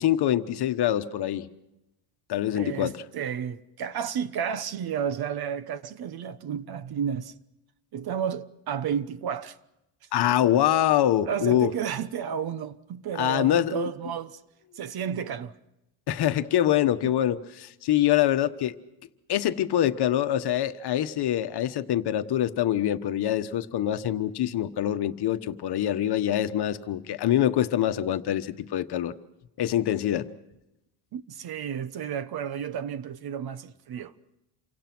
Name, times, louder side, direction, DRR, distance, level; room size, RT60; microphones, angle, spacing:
voice 1, 0.0-1.5 2.3-3.0 10.1-11.7 13.1-13.9 16.1-18.8 19.3-29.1 29.6-30.3, left 12 dB, 55° left, 1.3 m, -25 dB
voice 2, 2.5-7.3 7.9-9.6 11.2-14.4 14.8-15.5 17.0-17.1 31.1-34.1, right 8 dB, 50° right, 1.1 m, -32 dB
28.5 x 24.5 x 6.1 m
cardioid pair, 140°, 48 cm